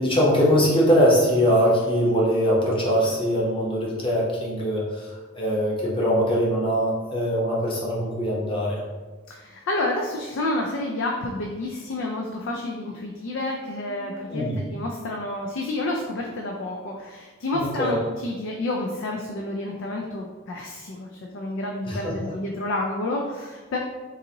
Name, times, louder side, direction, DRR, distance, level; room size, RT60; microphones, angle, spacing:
voice 1, 0.0-8.8 13.9-14.6 17.5-18.0 21.8-22.3, equal, 25° left, -5 dB, 0.9 m, -22 dB
voice 2, 9.3-23.8, left 2 dB, 65° left, 0 dB, 0.4 m, -29 dB
3.9 x 2.6 x 2.8 m, 1.3 s
head